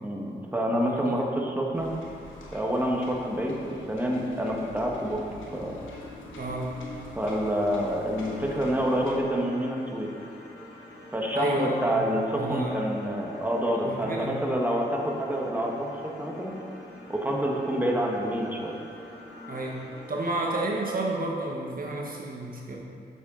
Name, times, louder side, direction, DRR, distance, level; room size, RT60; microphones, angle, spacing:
voice 1, 0.0-1.9 2.5-5.2 5.5-5.8 7.1-10.1 11.1-15.9 16.2-16.5 17.1-18.8, equal, 10° right, -1 dB, 1.5 m, -27 dB
voice 2, 0.7-1.2 6.4-6.8 11.3-12.0 12.3-12.8 13.9-14.4 19.5-22.8, right 2 dB, 45° right, -2 dB, 1.3 m, -31 dB
sound 1, 1.7-9.1, left 3 dB, 85° left, 1.1 m, -45 dB
sound 2, 8.3-20.4, left 1 dB, 60° left, 2.1 m, -46 dB
8.0 x 7.6 x 3.9 m, 2.4 s
supercardioid pair, 45°, 20 cm